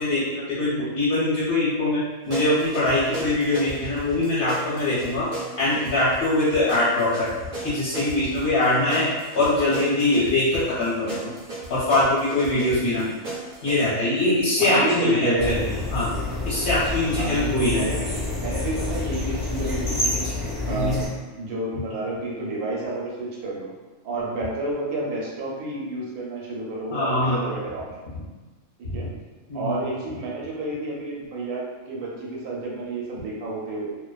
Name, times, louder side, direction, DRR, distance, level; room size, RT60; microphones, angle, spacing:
voice 1, 0.0-5.3 5.6-7.3 7.6-9.1 9.3-11.3 11.7-13.1 13.6-16.1 16.5-17.9 20.7-21.0 26.9-27.4 28.8-29.0 29.5-29.9, left 2 dB, 55° left, -10 dB, 0.7 m, -23 dB
sound 1, 2.3-13.7, right 2 dB, 50° right, 0.6 m, -36 dB
voice 2, 12.8-13.1 14.6-15.6 17.2-20.3 20.7-23.7 24.0-27.9 28.8-29.1 29.5-33.9, right 2 dB, 85° right, -4 dB, 1.1 m, -30 dB
sound 2, 15.4-21.1, left 2 dB, ahead, 0.6 m, -28 dB
2.5 x 2.1 x 2.3 m, 1.3 s
omnidirectional pair, 1.5 m